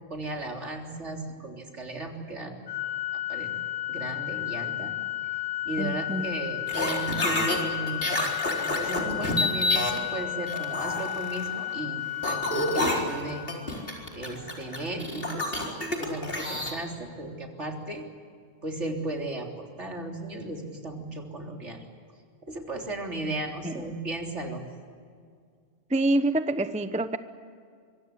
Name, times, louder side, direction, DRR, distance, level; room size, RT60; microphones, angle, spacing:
voice 1, 0.0-2.6 3.1-3.5 3.9-4.9 5.7-8.2 8.6-13.5 14.1-15.5 16.0-18.0 18.6-21.8 22.4-24.6, right 2 dB, 65° right, 2 dB, 3.8 m, -35 dB
Organ, 2.7-13.7, left 14 dB, 85° left, 2.6 m, -33 dB
voice 2, 5.8-6.3 23.6-23.7 25.9-27.2, right 2 dB, 5° right, 11 dB, 0.7 m, -26 dB
sound 1, 6.7-7.6 7.9-10.0 10.5-11.7 12.2-16.7, left 1 dB, 45° left, 4.5 m, -28 dB
25.0 x 24.0 x 8.3 m, 2.1 s
omnidirectional pair, 1.3 m